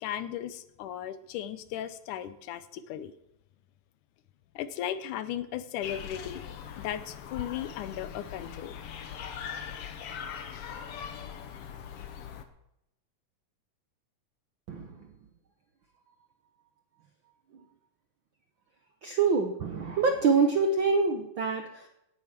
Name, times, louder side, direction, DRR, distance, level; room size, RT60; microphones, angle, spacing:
voice 1, 0.0-3.1 4.6-6.4 6.8-8.7 10.0-10.1, left 11 dB, 85° left, 13 dB, 2.4 m, -36 dB
sound 1, 5.8-12.4, left 8 dB, 60° left, 1.7 m, -41 dB
voice 2, 14.7-15.1 17.5-17.6 19.0-21.9, right 4 dB, 70° right, 5 dB, 1.1 m, -26 dB
17.5 x 8.3 x 5.9 m, 0.82 s
omnidirectional pair, 3.5 m